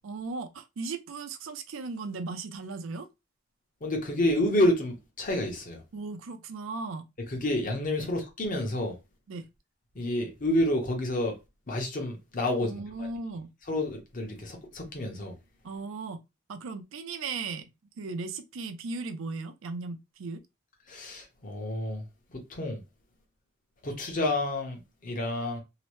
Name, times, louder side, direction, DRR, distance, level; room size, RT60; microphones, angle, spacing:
voice 1, 0.0-3.1 5.9-7.0 8.0-8.1 9.3-9.5 12.6-13.5 15.6-16.2 16.5-17.7 18.0-20.4, right 3 dB, 85° right, 0.5 m, -37 dB
voice 2, 3.8-5.8 7.3-9.0 9.9-11.4 11.7-12.8 13.7-15.3 20.9-22.0 22.5-22.8 23.8-25.6, left 1 dB, 45° left, 0.8 m, -29 dB
2.8 x 2.0 x 3.0 m
head